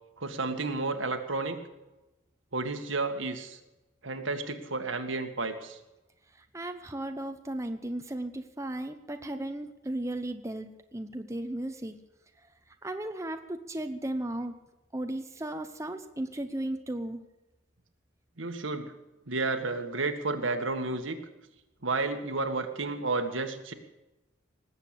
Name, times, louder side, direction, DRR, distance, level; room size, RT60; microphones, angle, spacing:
voice 1, 0.2-1.6 2.5-3.6 4.0-5.8 18.4-18.9 19.3-21.2 21.8-23.7, right 3 dB, 80° right, 6 dB, 1.8 m, -31 dB
voice 2, 6.3-12.0 12.8-14.5 14.9-17.2, right 1 dB, 15° right, 7 dB, 0.8 m, -35 dB
19.5 x 8.2 x 8.3 m, 1.0 s
head